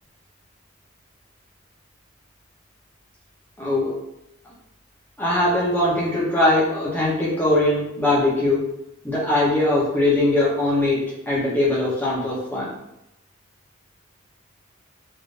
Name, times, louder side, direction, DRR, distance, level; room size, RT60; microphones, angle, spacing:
voice 1, 3.6-3.9 5.2-8.6 9.0-12.7, left 1 dB, 10° left, -7 dB, 0.8 m, -21 dB
3.5 x 2.5 x 2.5 m, 0.86 s
head